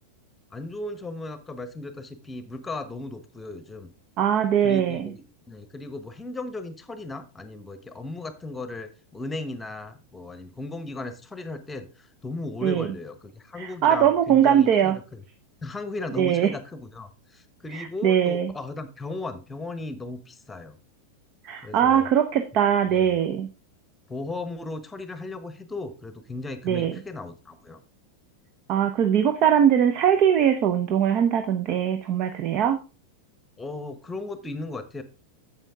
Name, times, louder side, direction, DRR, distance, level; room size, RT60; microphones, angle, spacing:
voice 1, 0.5-3.9 4.6-15.2 15.6-20.7 21.6-22.1 22.9-23.2 24.1-27.8 33.6-35.0, left 2 dB, 10° left, 12 dB, 1.1 m, -36 dB
voice 2, 4.2-5.1 12.6-12.9 13.6-15.0 16.2-16.5 17.7-18.5 21.4-23.5 26.6-26.9 28.7-32.8, right 9 dB, 40° right, 9 dB, 0.8 m, -21 dB
9.0 x 7.3 x 3.6 m, 0.32 s
figure-of-eight pair, 90°, 0 cm